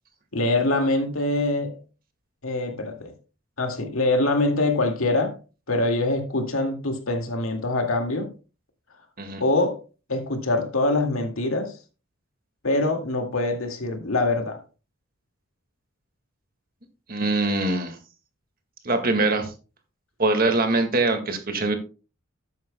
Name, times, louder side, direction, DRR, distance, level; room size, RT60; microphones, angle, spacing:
voice 1, 0.3-1.8 2.4-3.1 3.6-5.4 5.7-8.3 9.4-9.8 10.1-11.7 12.6-14.6, left 2 dB, 90° left, 2.0 m, -24 dB
voice 2, 17.1-18.0 18.8-19.5 20.2-21.7, right 2 dB, 45° right, 1.8 m, -23 dB
12.5 x 9.4 x 2.2 m
head